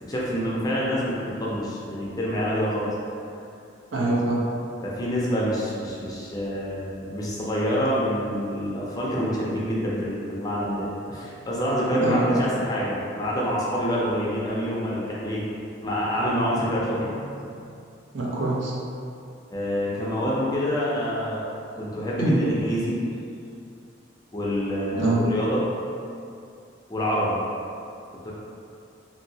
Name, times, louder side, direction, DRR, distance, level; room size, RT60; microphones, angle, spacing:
voice 1, 0.0-2.9 4.8-15.4 15.8-17.8 19.5-21.4 21.8-23.0 24.3-25.6 26.9-27.4 28.2-28.3, equal, 20° left, -6 dB, 0.4 m, -27 dB
voice 2, 3.9-4.4 12.0-12.4 18.1-18.7 22.2-22.4 25.0-25.3, right 2 dB, 70° right, -5 dB, 0.6 m, -24 dB
2.8 x 2.6 x 2.7 m, 2.5 s
head